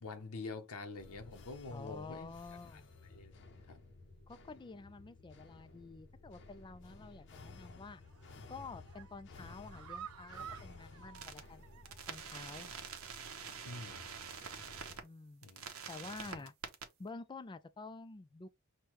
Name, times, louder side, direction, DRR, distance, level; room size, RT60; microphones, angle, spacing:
voice 1, 0.0-2.3 3.0-3.8 13.6-14.0 15.4-15.7 16.0-16.4, left 3 dB, 85° left, 0.8 m, -47 dB
sound 1, 1.0-15.0, left 3 dB, 55° left, 0.7 m, -56 dB
voice 2, 1.7-2.9 4.3-8.0 8.5-11.7 12.1-12.7 15.0-16.5 17.0-18.5, left 3 dB, 20° left, 0.3 m, -49 dB
sound 2, 8.0-8.4 8.8-12.2 12.5-12.6 13.0-13.1, right 9 dB, 85° right, 0.4 m, -51 dB
sound 3, 11.1-11.4 11.8-15.0 15.4-16.8, right 6 dB, 70° right, 0.8 m, -46 dB
6.1 x 2.2 x 3.0 m
head